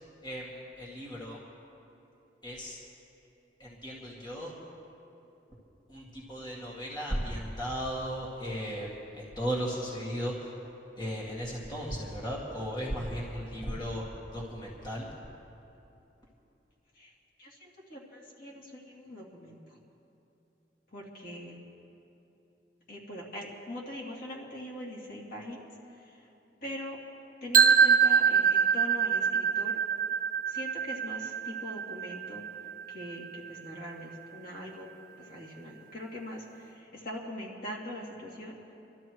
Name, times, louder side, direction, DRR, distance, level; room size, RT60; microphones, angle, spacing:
voice 1, 0.2-1.4 2.4-2.8 3.6-4.5 5.9-10.5 11.0-14.0 14.3-15.1, equal, 25° left, -5 dB, 2.1 m, -36 dB
voice 2, 17.4-19.8 20.9-21.6 22.9-26.3 26.6-27.0 27.4-29.8 30.5-32.4 32.9-34.9 35.2-38.7, left 1 dB, 55° left, -3 dB, 2.6 m, -42 dB
sound 1, 27.5-33.5, right 6 dB, 50° right, 1.3 m, -25 dB
27.5 x 13.0 x 3.1 m, 2.8 s
head